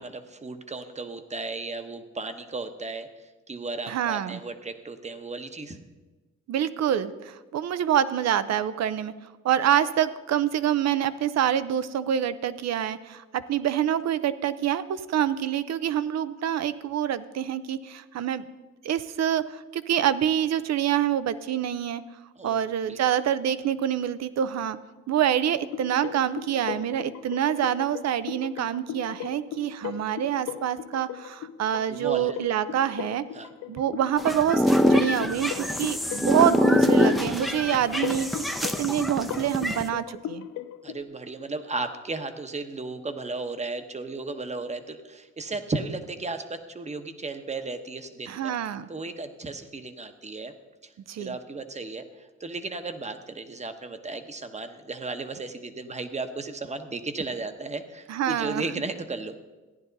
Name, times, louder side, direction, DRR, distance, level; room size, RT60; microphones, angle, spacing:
voice 1, 0.0-5.8 22.4-22.6 22.9-23.0 31.9-32.4 33.3-33.5 40.8-48.5 48.9-50.5 50.8-50.9 51.2-59.4, right 3 dB, 20° right, 8 dB, 1.1 m, -35 dB
voice 2, 3.9-4.4 6.5-9.1 9.4-18.4 18.8-22.0 22.4-24.8 25.1-33.2 33.7-38.4 38.8-40.5 48.3-48.9 51.1-51.3 58.1-58.6, right 10 dB, 60° right, 15 dB, 0.7 m, -26 dB
sound 1, 25.4-41.0, left 11 dB, 85° left, 0.6 m, -38 dB
sound 2, 34.2-39.8, left 1 dB, ahead, 0.7 m, -24 dB
15.0 x 10.5 x 4.0 m, 1.2 s
cardioid pair, 90°, 30 cm